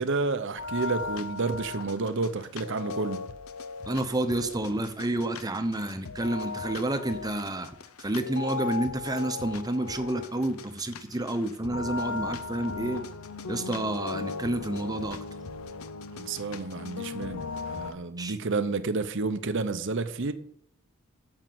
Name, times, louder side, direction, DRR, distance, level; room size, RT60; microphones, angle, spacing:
voice 1, 0.0-3.2 16.1-20.3, right 3 dB, 60° right, 0.8 m, -30 dB
sound 1, 0.6-17.9, left 4 dB, 80° left, 0.7 m, -37 dB
voice 2, 3.9-7.7 8.0-13.0 13.5-15.2 18.2-18.4, right 1 dB, 15° right, 0.9 m, -29 dB
9.2 x 7.4 x 7.7 m
head